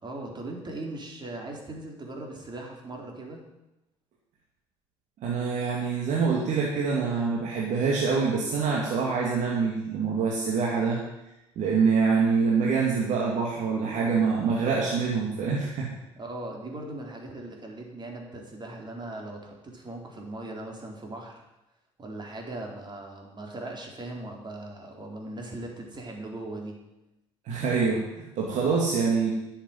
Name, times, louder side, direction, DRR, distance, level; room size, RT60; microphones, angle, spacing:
voice 1, 0.0-3.4 16.2-21.4 22.0-26.8, right 2 dB, 35° right, 1 dB, 4.0 m, -39 dB
voice 2, 5.2-11.0 11.6-15.9 27.4-29.3, right 5 dB, 65° right, -3 dB, 2.6 m, -25 dB
11.0 x 7.3 x 9.0 m, 0.95 s
hypercardioid pair, 65°, 13 cm